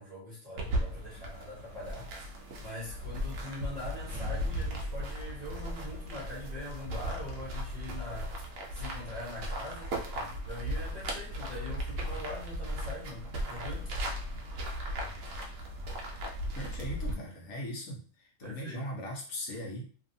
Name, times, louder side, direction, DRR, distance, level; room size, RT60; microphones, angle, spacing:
voice 1, 0.0-13.9 18.4-18.9, left 1 dB, 35° right, -7 dB, 1.0 m, -43 dB
sound 1, 0.6-17.1, equal, 75° right, 1.1 m, -36 dB
voice 2, 16.5-19.8, equal, 85° left, -1 dB, 1.3 m, -39 dB
3.0 x 2.6 x 2.6 m, 0.41 s
omnidirectional pair, 1.4 m